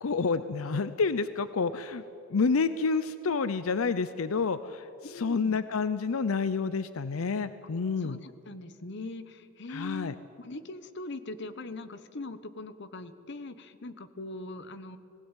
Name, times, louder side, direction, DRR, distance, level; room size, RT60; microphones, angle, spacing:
voice 1, 0.0-2.0 2.3-8.2 9.7-10.1, left 4 dB, 90° left, 14 dB, 0.6 m, -29 dB
voice 2, 5.0-5.6 8.0-15.0, left 2 dB, 55° left, 12 dB, 1.0 m, -41 dB
19.5 x 16.5 x 9.1 m, 2.6 s
head